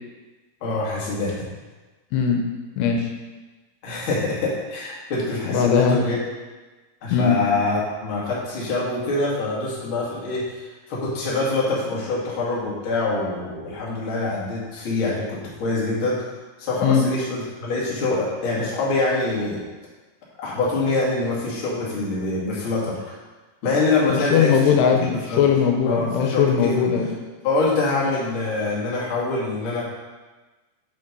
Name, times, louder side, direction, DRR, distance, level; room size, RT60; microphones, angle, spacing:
voice 1, 0.6-1.5 3.8-6.2 7.0-16.2 16.6-19.6 20.4-23.2 23.6-25.4 25.8-26.8 27.4-29.8, left 3 dB, 40° left, -5 dB, 2.0 m, -25 dB
voice 2, 2.1-2.4 2.8-3.1 5.5-6.0 7.1-7.4 16.8-17.1 24.1-27.1, left 7 dB, 80° left, 3 dB, 2.9 m, -19 dB
7.3 x 5.5 x 5.3 m, 1.2 s
omnidirectional pair, 4.8 m